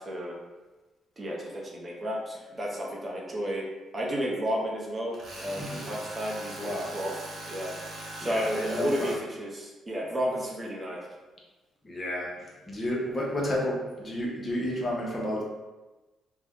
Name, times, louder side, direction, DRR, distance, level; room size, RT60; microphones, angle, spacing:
voice 1, 0.0-0.3 1.2-3.7 3.9-7.1 7.5-7.7 8.2-11.0, equal, 30° right, -3 dB, 0.7 m, -32 dB
Tools, 5.1-9.2, right 2 dB, 55° right, 0.9 m, -41 dB
voice 2, 5.6-5.9 6.5-6.9 8.2-9.1 11.8-15.4, left 1 dB, 30° left, -3 dB, 0.8 m, -31 dB
2.5 x 2.2 x 3.5 m, 1.2 s
cardioid pair, 90°, 0 cm